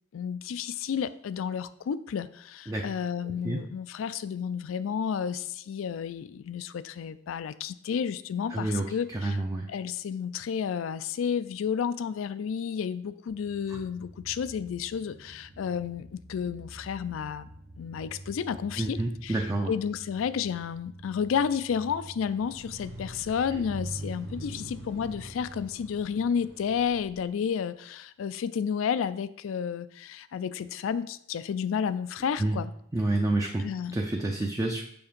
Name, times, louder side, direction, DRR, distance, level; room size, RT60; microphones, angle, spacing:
voice 1, 0.1-9.4 9.7-17.5 17.8-19.4 19.7-32.7 33.6-34.0, left 7 dB, 85° left, 15 dB, 0.3 m, -31 dB
voice 2, 3.2-3.6 8.5-9.7 13.7-13.8 18.8-19.7 23.6-23.7 32.4-32.6 32.9-33.6 33.9-34.8, right 2 dB, 15° right, 1 dB, 0.4 m, -29 dB
sound 1, 13.3-25.9, right 1 dB, 50° right, 1.0 m, -48 dB
sound 2, 22.2-27.2, right 1 dB, 70° right, 1.4 m, -43 dB
7.0 x 2.9 x 5.1 m, 0.71 s
head